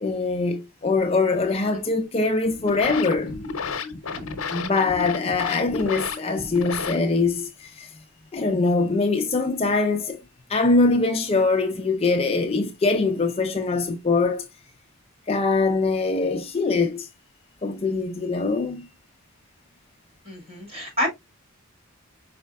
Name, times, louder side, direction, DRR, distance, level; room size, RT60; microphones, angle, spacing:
voice 1, 0.0-3.3 4.5-7.9 8.3-10.2 10.5-14.5 15.3-17.1 17.6-18.9, left 3 dB, 25° left, 0.4 m, -23 dB
voice 2, 1.5-1.8 4.1-4.2 20.2-21.1, left 1 dB, 25° right, 2.2 m, -29 dB
sound 1, 2.4-7.4, left 4 dB, 65° left, 0.8 m, -32 dB
5.3 x 4.3 x 2.3 m
head